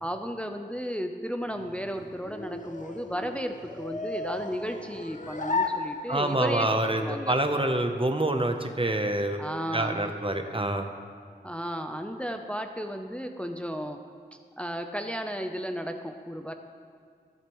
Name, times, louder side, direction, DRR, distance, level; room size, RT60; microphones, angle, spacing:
voice 1, 0.0-7.4 9.4-10.1 11.4-14.0 14.6-16.5, equal, 5° left, 5 dB, 0.6 m, -34 dB
sound 1, 1.5-6.5, left 3 dB, 45° left, 0.7 m, -35 dB
voice 2, 6.1-9.4 9.7-10.9, right 1 dB, 30° right, 6 dB, 0.7 m, -26 dB
12.0 x 10.5 x 3.1 m, 2.2 s
wide cardioid pair, 45°, 18 cm